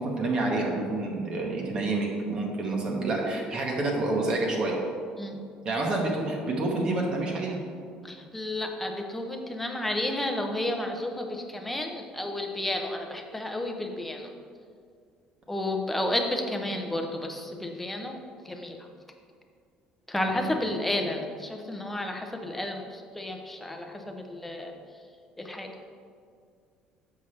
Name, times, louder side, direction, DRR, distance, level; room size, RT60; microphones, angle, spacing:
voice 1, 0.0-4.8 5.6-7.6 20.3-20.5, right 2 dB, 35° right, -1 dB, 1.0 m, -28 dB
voice 2, 8.0-14.3 15.5-18.2 18.4-18.8 20.1-24.7 25.4-25.7, left 1 dB, 5° left, 3 dB, 0.6 m, -32 dB
7.2 x 5.6 x 3.2 m, 2.2 s
cardioid pair, 140°, 2 cm